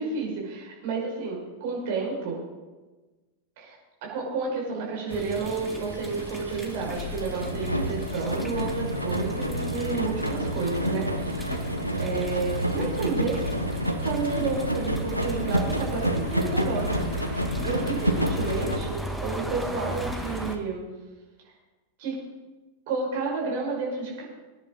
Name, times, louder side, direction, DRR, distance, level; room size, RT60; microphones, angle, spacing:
voice 1, 0.0-2.4 3.6-3.8 4.0-11.6 11.9-13.4 14.0-20.9 22.0-22.2 22.9-24.2, right 4 dB, 50° right, -3 dB, 5.8 m, -31 dB
sound 1, 5.1-20.6, equal, 90° left, 1.0 m, -29 dB
sound 2, 5.1-20.6, equal, ahead, 1.2 m, -37 dB
20.5 x 10.0 x 4.0 m, 1.2 s
figure-of-eight pair, 90°, 0 cm